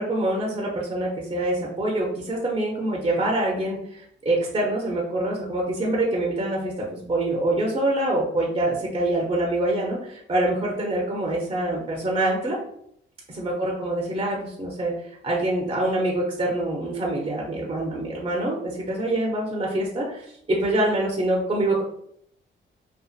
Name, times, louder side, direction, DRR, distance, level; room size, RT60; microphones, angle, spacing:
voice 1, 0.0-12.6 13.3-21.8, right 1 dB, 25° right, -2 dB, 0.6 m, -25 dB
2.5 x 2.3 x 2.4 m, 0.70 s
cardioid pair, 80°, 20 cm